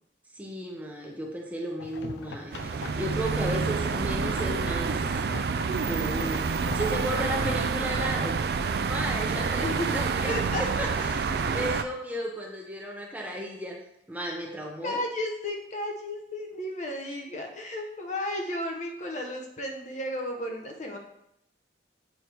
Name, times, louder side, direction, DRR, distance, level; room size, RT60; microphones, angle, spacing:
voice 1, 0.3-5.3 5.9-8.4 8.8-11.2 11.4-13.8 14.1-15.0, right 1 dB, 10° right, -1 dB, 0.8 m, -34 dB
sound 1, 1.8-7.6, left 3 dB, 70° left, 0.6 m, -41 dB
sound 2, 2.5-11.8, right 5 dB, 55° right, 0.3 m, -28 dB
voice 2, 5.9-6.5 9.6-10.0 10.3-10.6 14.8-21.0, left 1 dB, 40° left, 2 dB, 0.9 m, -33 dB
7.8 x 4.5 x 3.4 m, 0.78 s
head